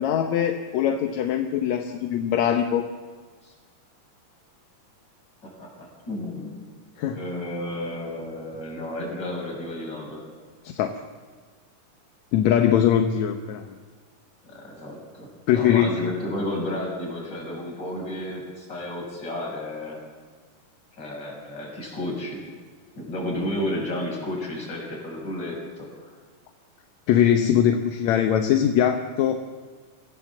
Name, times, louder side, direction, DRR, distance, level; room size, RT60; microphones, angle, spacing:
voice 1, 0.0-2.8 7.0-7.2 10.6-11.0 12.3-13.8 15.5-15.9 27.1-29.4, left 9 dB, 70° left, 6 dB, 2.0 m, -21 dB
voice 2, 5.4-6.5 7.1-10.2 14.4-20.0 21.0-22.4 23.0-26.1, left 1 dB, 30° left, -2 dB, 7.0 m, -32 dB
25.5 x 16.0 x 7.3 m, 1.5 s
omnidirectional pair, 3.9 m